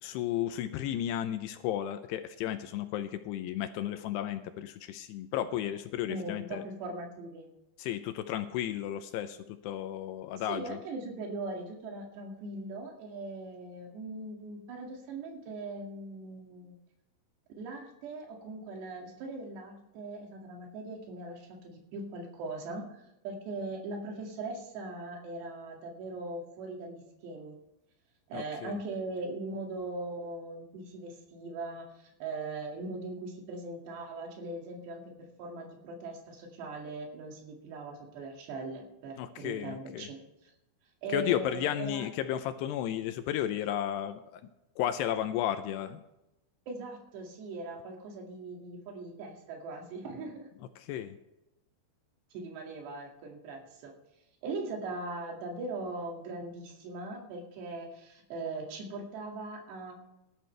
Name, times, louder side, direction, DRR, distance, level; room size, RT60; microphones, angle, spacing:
voice 1, 0.0-6.6 7.8-10.8 28.3-28.8 39.2-40.1 41.1-44.2 44.8-46.0 50.8-51.2, left 11 dB, 80° left, 9 dB, 2.6 m, -33 dB
voice 2, 6.1-7.5 10.5-16.7 17.6-27.6 28.3-40.5 41.0-42.1 46.7-50.5 52.3-53.9 54.4-60.0, right 2 dB, 70° right, 0 dB, 4.4 m, -40 dB
18.0 x 12.0 x 3.3 m, 0.92 s
omnidirectional pair, 5.1 m